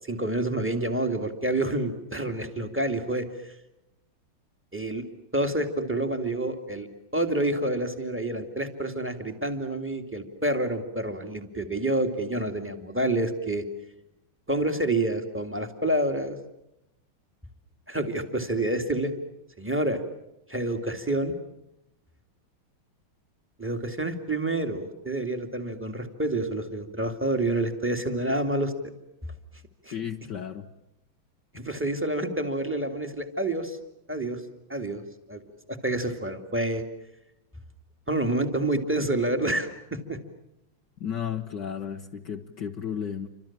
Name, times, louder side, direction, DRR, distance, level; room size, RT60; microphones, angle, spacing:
voice 1, 0.1-3.3 4.7-5.0 5.3-6.9 7.1-13.6 14.5-16.4 17.9-19.1 19.6-20.0 20.5-21.3 23.6-28.7 29.8-29.9 31.5-33.8 34.1-34.4 34.7-35.0 35.3-35.4 35.7-36.8 38.1-40.2, right 1 dB, 5° right, 6 dB, 2.5 m, -28 dB
voice 2, 29.9-30.7 41.0-43.3, left 8 dB, 60° left, 4 dB, 1.7 m, -33 dB
29.5 x 26.0 x 7.5 m, 0.88 s
omnidirectional pair, 2.3 m